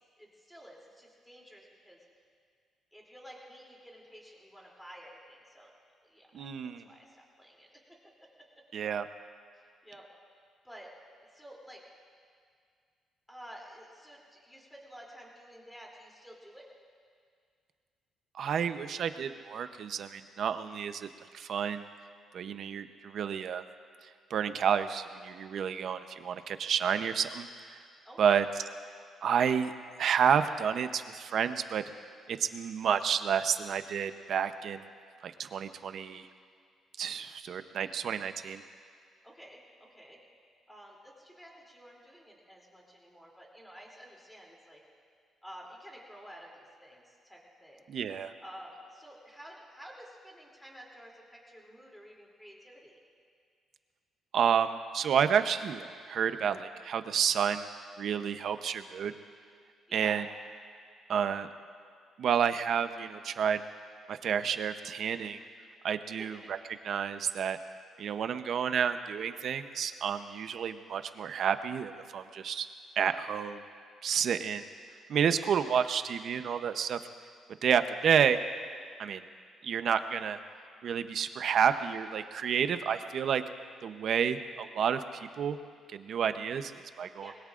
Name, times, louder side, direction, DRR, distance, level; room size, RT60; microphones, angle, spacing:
voice 1, 0.2-2.0 2.9-5.7 6.0-8.3 9.5-10.1 10.6-10.9 11.3-11.8 13.3-16.6 28.0-28.4 39.2-40.2 40.7-44.8 45.4-47.8 48.4-53.0 59.9-60.2 66.1-66.5 87.2-87.3, equal, 5° left, -3 dB, 2.9 m, -51 dB
voice 2, 6.3-6.8 8.7-9.1 18.3-21.1 21.3-21.9 22.3-23.6 24.3-27.5 28.2-28.4 29.2-29.7 30.0-31.8 32.3-34.8 35.2-36.3 37.0-38.6 47.9-48.3 54.3-57.7 58.0-59.1 59.9-60.2 61.1-61.5 62.2-63.6 64.1-65.4 65.8-66.6 66.8-67.6 68.0-72.7 73.0-73.6 74.0-74.6 75.1-77.0 77.6-78.4 79.0-79.2 79.6-80.4 80.8-83.4 83.8-85.6 85.9-87.3, right 7 dB, 55° right, 10 dB, 0.7 m, -30 dB
25.5 x 21.5 x 2.5 m, 2.1 s
cardioid pair, 145°, 0 cm